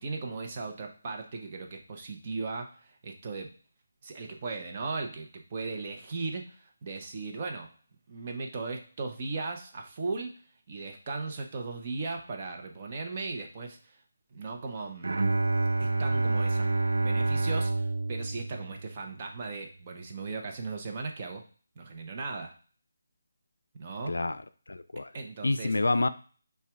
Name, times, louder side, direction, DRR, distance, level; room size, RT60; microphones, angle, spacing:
voice 1, 0.0-3.5 4.0-7.7 8.1-10.4 10.7-14.0 14.3-15.2 15.8-16.7 17.0-21.4 21.8-22.5 23.8-24.2 25.1-25.7, right 3 dB, 35° right, 2 dB, 0.8 m, -37 dB
Bowed string instrument, 15.0-19.2, right 3 dB, 70° right, 0.3 m, -28 dB
voice 2, 24.7-25.1 25.4-26.1, left 2 dB, 85° left, 12 dB, 0.4 m, -27 dB
5.6 x 2.3 x 3.4 m, 0.40 s
figure-of-eight pair, 160°, 0 cm